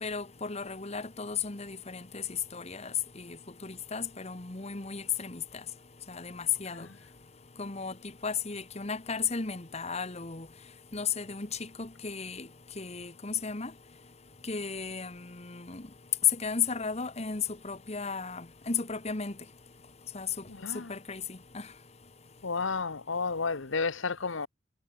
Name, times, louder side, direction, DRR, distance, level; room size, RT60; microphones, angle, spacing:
voice 1, 0.0-2.2 2.5-3.4 3.6-5.4 6.1-6.9 7.6-7.9 8.2-10.5 10.9-12.5 12.8-13.7 14.5-15.8 16.4-19.3 20.1-20.3 20.9-21.6, left 5 dB, 35° left, 1.4 m, -35 dB
voice 2, 22.4-24.5, left 4 dB, 75° left, 1.2 m, -31 dB
head